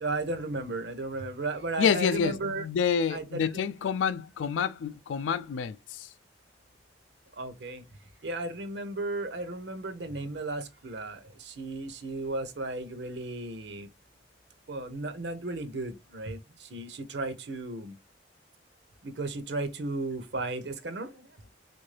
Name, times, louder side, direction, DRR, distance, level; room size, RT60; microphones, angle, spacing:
voice 1, 0.0-2.7 3.1-3.5 7.3-7.8 8.2-13.9 14.7-18.0 19.0-21.4, right 2 dB, 70° right, 0.6 m, -35 dB
voice 2, 1.8-6.1, left 7 dB, 90° left, 0.3 m, -28 dB
3.6 x 2.6 x 3.1 m
head